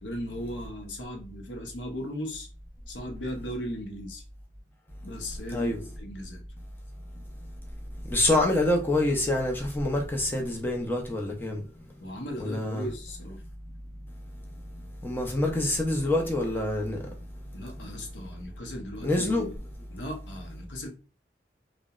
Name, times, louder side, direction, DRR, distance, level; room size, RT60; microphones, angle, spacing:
voice 1, 0.0-2.5 2.9-4.2 5.0-6.4 12.0-13.4 17.5-19.5 19.9-20.9, equal, 80° left, 0.6 m, -37 dB
voice 2, 8.1-11.6 12.4-12.9 15.0-17.0 19.0-19.5, left 1 dB, 10° left, 0.4 m, -26 dB
2.7 x 2.0 x 2.3 m
head